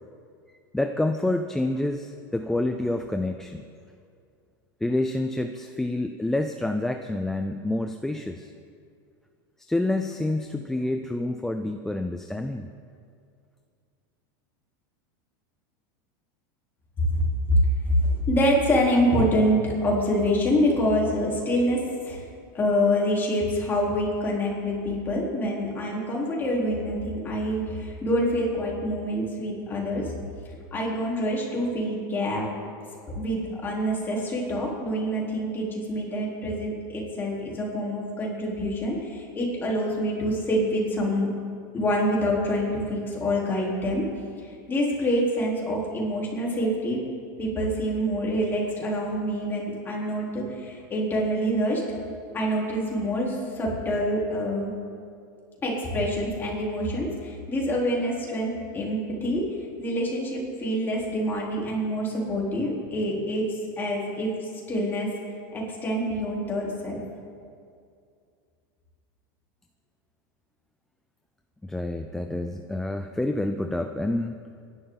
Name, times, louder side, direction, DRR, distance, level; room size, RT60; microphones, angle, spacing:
voice 1, 0.7-3.7 4.8-8.5 9.7-12.7 71.6-74.4, left 1 dB, 5° left, 6 dB, 0.4 m, -28 dB
voice 2, 17.9-21.8 22.0-22.2 22.5-30.0 30.7-32.4 33.2-41.3 41.7-44.0 44.4-47.0 47.4-51.8 52.3-54.7 55.6-59.4 59.8-65.1 65.5-67.0, equal, 20° left, -4 dB, 3.9 m, -26 dB
25.5 x 11.0 x 4.0 m, 2.3 s
supercardioid pair, 145°, 11 cm